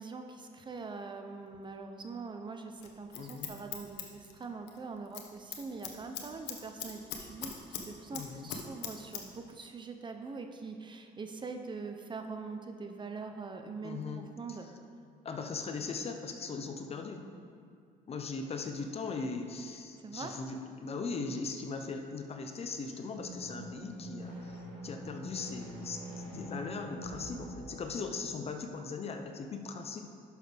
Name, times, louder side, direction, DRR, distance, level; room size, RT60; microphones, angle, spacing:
voice 1, 0.0-14.0 14.4-14.7 20.0-20.4, right 4 dB, 30° right, 5 dB, 0.7 m, -43 dB
Scissors, 2.8-4.8 5.1-5.3 5.5-7.9 8.1-9.2 9.5-9.6, left 9 dB, 85° left, 1.0 m, -40 dB
voice 2, 3.1-3.5 8.1-8.5 13.8-14.3 15.2-17.3 18.1-30.0, left 4 dB, 35° left, 5 dB, 0.7 m, -39 dB
sound 1, 23.1-28.7, right 1 dB, 80° right, 2.3 m, -45 dB
11.0 x 6.4 x 3.4 m, 2.2 s
cardioid pair, 110°, 17 cm